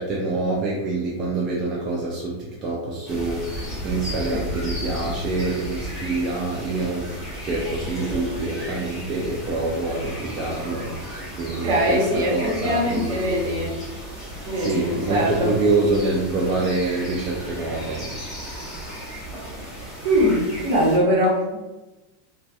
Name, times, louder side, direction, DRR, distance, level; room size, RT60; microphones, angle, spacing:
voice 1, 0.0-7.2 7.4-13.7 14.6-18.1, right 2 dB, 35° right, -4 dB, 0.4 m, -26 dB
sound 1, 3.1-21.0, equal, 15° left, 1.2 m, -34 dB
voice 2, 11.6-13.8 14.4-15.5 20.0-21.6, equal, 60° right, -3 dB, 0.9 m, -22 dB
2.5 x 2.2 x 2.3 m, 1.1 s
supercardioid pair, 135°, 0 cm